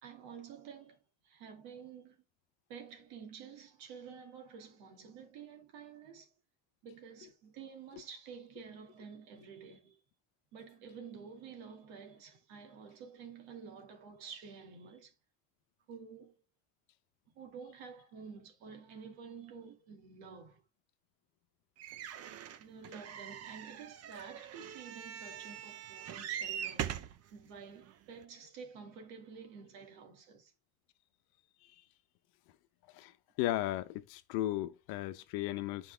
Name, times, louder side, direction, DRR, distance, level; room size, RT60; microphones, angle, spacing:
voice 1, 0.0-2.2 2.7-6.3 6.8-10.0 10.5-15.1 15.9-16.3 17.3-20.6 22.6-30.5, right 6 dB, 90° right, 2.3 m, -50 dB
sound 1, 21.8-27.2 27.9-28.0 28.2-28.3, right 10 dB, 45° right, 0.7 m, -42 dB
voice 2, 33.4-35.9, left 15 dB, 80° left, 0.9 m, -35 dB
10.0 x 4.8 x 3.4 m
cardioid pair, 140°, 36 cm